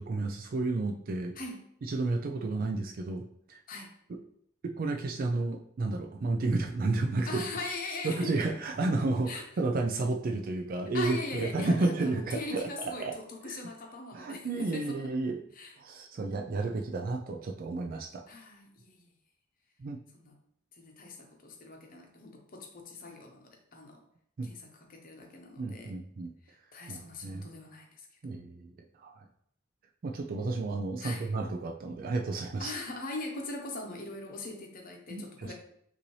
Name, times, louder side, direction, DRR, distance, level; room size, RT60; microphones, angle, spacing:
voice 1, 0.0-1.3 1.8-3.6 4.6-7.4 8.0-12.7 13.0-13.1 13.5-13.6 14.1-15.4 15.8-18.2 19.8-20.0 24.4-24.5 25.6-26.3 26.9-27.5 28.2-29.3 30.0-32.7 35.1-35.5, right 3 dB, 45° right, 3 dB, 0.4 m, -32 dB
voice 2, 7.2-8.5 9.3-9.4 10.9-15.1 15.5-15.7 18.3-19.1 20.1-20.3 20.7-24.0 24.4-25.9 26.4-28.1 31.0-31.3 32.6-35.5, left 3 dB, 45° left, 2 dB, 0.9 m, -41 dB
5.5 x 2.7 x 3.1 m, 0.69 s
head